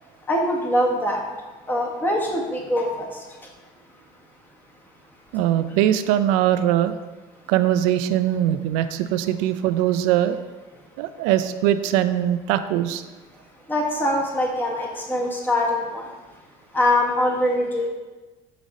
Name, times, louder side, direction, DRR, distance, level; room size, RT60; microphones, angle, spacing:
voice 1, 0.2-1.2 1.7-3.5 13.7-16.3 16.7-17.9, left 1 dB, 15° left, -1 dB, 1.1 m, -23 dB
voice 2, 5.3-6.9 7.5-10.4 11.0-13.0, right 11 dB, 90° right, 11 dB, 0.4 m, -21 dB
5.2 x 4.9 x 4.1 m, 1.2 s
cardioid pair, 140°, 13 cm